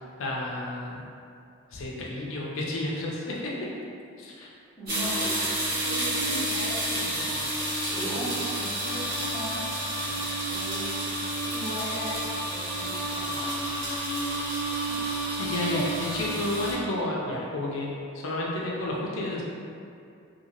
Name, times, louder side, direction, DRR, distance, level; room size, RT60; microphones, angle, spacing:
voice 1, 0.2-1.0 1.7-3.5 4.2-4.5 15.4-19.4, left 2 dB, 80° left, -4 dB, 0.5 m, -31 dB
voice 2, 4.7-5.4 5.7-7.3 7.9-8.3 8.6-9.6 10.5-11.0 11.5-12.2 12.5-13.4, right 1 dB, ahead, -14 dB, 0.9 m, -37 dB
sound 1, 4.9-16.7, right 1 dB, 50° right, 1.2 m, -30 dB
2.7 x 2.7 x 2.9 m, 2.4 s
head